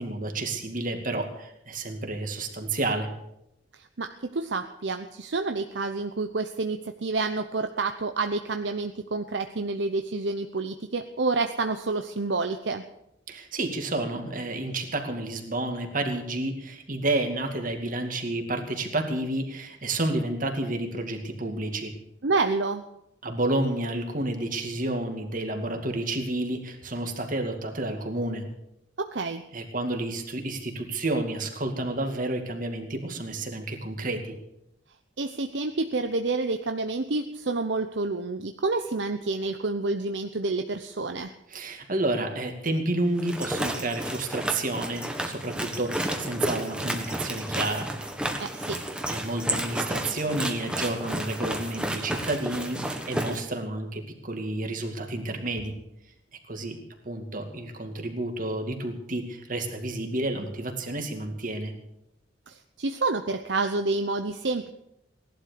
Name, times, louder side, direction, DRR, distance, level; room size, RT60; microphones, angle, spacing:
voice 1, 0.0-3.1 13.3-21.9 23.2-28.4 29.5-34.3 41.5-47.9 49.1-55.8 56.5-56.8 57.0-61.7, right 2 dB, 45° right, 4 dB, 2.4 m, -30 dB
voice 2, 3.7-12.8 22.2-22.8 29.0-29.4 35.2-41.3 48.4-48.8 62.5-64.7, right 3 dB, 70° right, 7 dB, 0.8 m, -29 dB
sound 1, 43.2-53.4, right 1 dB, 5° right, 1.5 m, -31 dB
18.0 x 11.5 x 6.8 m, 0.82 s
head